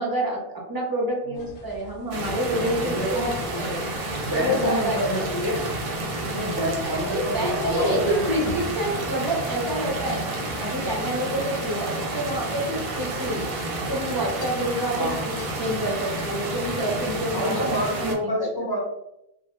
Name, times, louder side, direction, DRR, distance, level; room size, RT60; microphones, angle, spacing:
voice 1, 0.0-3.3 3.6-3.8 4.3-5.3 6.8-13.4 13.9-17.9 18.2-18.5, right 1 dB, 30° right, -2 dB, 0.4 m, -28 dB
sound 1, 1.3-9.1, left 2 dB, 55° left, 0.4 m, -44 dB
sound 2, 2.1-18.1, right 2 dB, 65° right, 0.7 m, -30 dB
voice 2, 2.5-3.7 4.2-5.7 6.2-8.5 15.0-15.2 17.3-18.8, equal, 25° left, -5 dB, 0.7 m, -28 dB
sound 3, 14.4-16.8 17.1-17.2, left 3 dB, 90° left, 0.8 m, -48 dB
2.1 x 2.1 x 2.9 m, 0.86 s
omnidirectional pair, 1.0 m